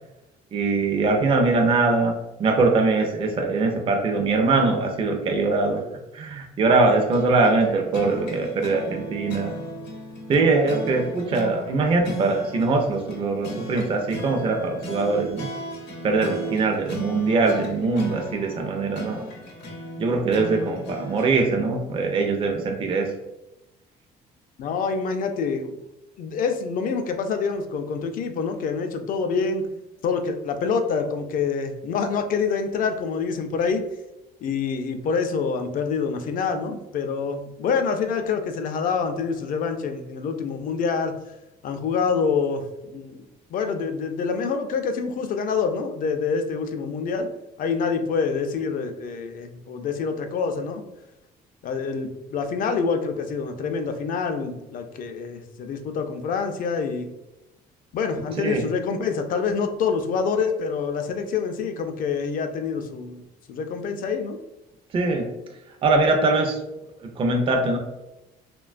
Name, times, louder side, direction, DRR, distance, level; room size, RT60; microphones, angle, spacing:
voice 1, 0.5-2.1 2.4-5.8 6.1-9.5 10.3-15.5 16.0-19.2 20.0-23.1 58.4-58.6 64.9-65.3 65.8-66.6 67.0-67.8, right 3 dB, 30° right, 2 dB, 0.4 m, -22 dB
sound 1, 6.8-21.4, equal, 75° left, 0.7 m, -36 dB
voice 2, 24.6-25.8 26.2-29.7 30.0-33.8 34.4-41.1 41.6-43.2 43.5-47.3 47.6-50.8 51.6-57.1 57.9-63.2 63.5-64.4, left 5 dB, 55° left, 7 dB, 0.4 m, -26 dB
3.0 x 2.2 x 2.4 m, 0.93 s
cardioid pair, 110°, 17 cm